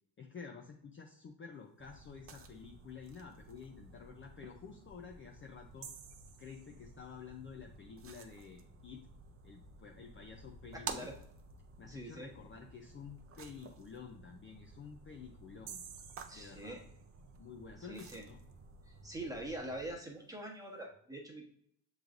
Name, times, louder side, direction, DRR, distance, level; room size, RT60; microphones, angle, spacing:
voice 1, 0.2-5.9 6.4-9.0 9.4-11.1 11.8-15.8 16.3-16.8 17.4-18.4, left 6 dB, 30° left, 2 dB, 0.5 m, -50 dB
sound 1, 1.8-19.9, right 5 dB, 30° right, 0.5 m, -52 dB
sound 2, 5.8-7.3 15.7-17.4, right 8 dB, 85° right, 0.8 m, -52 dB
voice 2, 10.7-11.1 11.9-12.3 16.3-16.8 17.8-18.2 18.9-21.4, right 1 dB, 10° right, -1 dB, 1.2 m, -44 dB
6.7 x 3.2 x 2.4 m, 0.70 s
cardioid pair, 105°, 44 cm